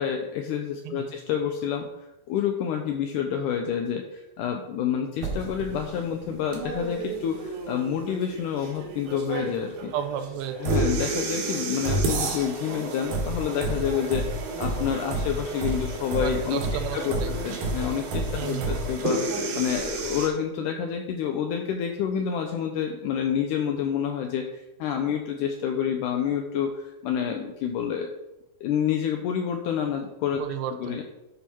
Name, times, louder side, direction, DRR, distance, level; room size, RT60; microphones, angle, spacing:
voice 1, 0.0-1.9 2.3-9.9 10.6-16.6 16.9-28.1 28.6-30.4 30.8-31.0, left 8 dB, 80° left, 4 dB, 1.8 m, -28 dB
sound 1, 5.2-20.3, right 2 dB, 70° right, 2.8 m, -30 dB
voice 2, 9.9-10.8 16.2-17.3 18.3-18.7 30.4-31.0, right 9 dB, 85° right, 8 dB, 2.5 m, -33 dB
10.5 x 4.4 x 4.4 m, 0.95 s
omnidirectional pair, 4.2 m